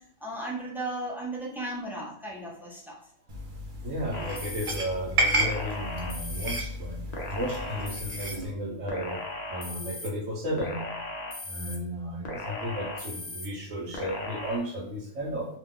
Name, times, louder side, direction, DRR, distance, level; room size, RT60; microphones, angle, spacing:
voice 1, 0.2-3.0, right 1 dB, ahead, -4 dB, 0.5 m, -35 dB
sound 1, 3.3-8.5, right 2 dB, 50° right, 0.7 m, -32 dB
voice 2, 3.8-7.0 7.3-9.2 9.5-10.8 11.5-15.6, equal, 70° right, -6 dB, 1.1 m, -34 dB
sound 2, 4.1-4.8 5.4-6.6 7.1-8.4 8.9-10.1 10.6-11.8 12.2-13.5 13.9-14.6, left 2 dB, 45° left, 0.6 m, -37 dB
2.8 x 2.3 x 3.6 m, 0.72 s
omnidirectional pair, 1.4 m